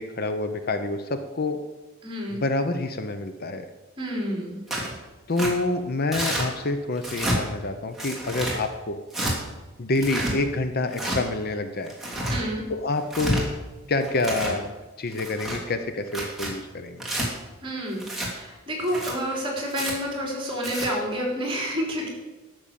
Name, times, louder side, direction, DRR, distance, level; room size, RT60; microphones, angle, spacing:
voice 1, 0.0-1.6 2.3-3.6 5.3-9.0 9.8-12.0 12.7-13.5 13.9-14.7 15.0-17.0, left 2 dB, 50° left, 9 dB, 0.8 m, -27 dB
voice 2, 2.0-2.4 4.0-4.6 12.3-12.6 17.6-22.1, equal, 25° right, -1 dB, 4.1 m, -29 dB
Tearing, 4.7-4.9 5.4-5.5 6.1-6.5 7.0-7.4 8.0-8.6 9.1-9.3 9.9-10.3 10.9-11.2 11.9-12.4 13.0-13.4 14.0-14.6 15.1-15.6 16.1-16.5 17.0-17.3 18.0-18.3 18.8-19.1 19.7-19.9 20.5-20.9, right 1 dB, ahead, 3.0 m, -28 dB
12.5 x 6.8 x 7.6 m, 1.2 s
head